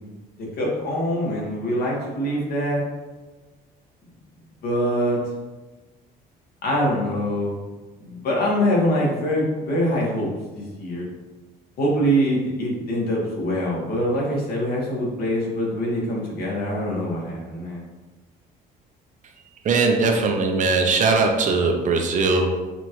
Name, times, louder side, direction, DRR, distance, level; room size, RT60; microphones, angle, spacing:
voice 1, 0.4-2.8 4.6-5.2 6.6-7.6 8.0-11.1 11.8-17.8, equal, 65° left, -3 dB, 1.5 m, -24 dB
voice 2, 19.6-22.6, right 3 dB, 50° right, 4 dB, 0.6 m, -20 dB
5.8 x 2.5 x 3.1 m, 1.2 s
cardioid pair, 110°, 17 cm